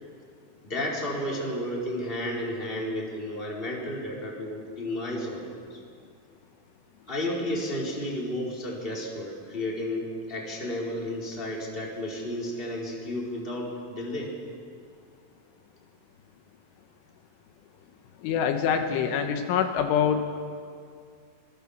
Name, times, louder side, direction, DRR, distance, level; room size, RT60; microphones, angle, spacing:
voice 1, 0.6-5.8 7.1-14.3, left 1 dB, 10° left, -3 dB, 4.2 m, -32 dB
voice 2, 18.2-20.3, left 7 dB, 80° left, 5 dB, 3.7 m, -25 dB
25.5 x 22.0 x 7.4 m, 2.2 s
omnidirectional pair, 5.6 m